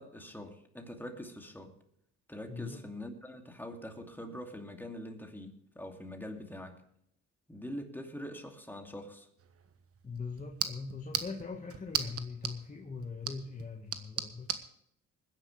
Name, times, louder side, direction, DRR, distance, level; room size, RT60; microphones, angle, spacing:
voice 1, 0.0-1.7 2.3-6.8 7.5-9.3, left 1 dB, 5° left, 3 dB, 2.6 m, -44 dB
voice 2, 2.5-2.9 10.0-14.6, left 4 dB, 25° left, 1 dB, 1.6 m, -41 dB
sound 1, 9.4-14.7, right 7 dB, 50° right, 1.3 m, -39 dB
21.0 x 10.5 x 3.3 m, 0.73 s
cardioid pair, 90°, 30 cm